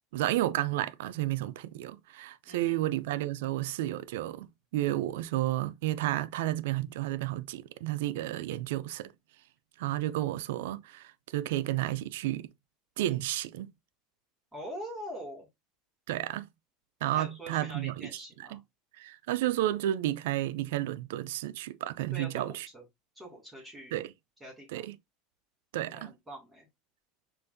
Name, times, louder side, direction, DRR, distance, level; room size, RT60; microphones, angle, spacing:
voice 1, 0.1-9.1 9.8-12.5 13.0-13.7 16.1-16.5 17.0-18.6 19.0-22.7 23.9-24.1 24.7-25.0 25.7-26.1, right 14 dB, 85° right, 0.4 m, -32 dB
voice 2, 2.5-2.8 14.5-15.5 17.1-18.6 22.1-22.8 23.1-23.9 24.4-24.9 25.9-26.7, equal, 5° right, 2.5 m, -44 dB
6.8 x 2.5 x 2.6 m
supercardioid pair, 135°, 0 cm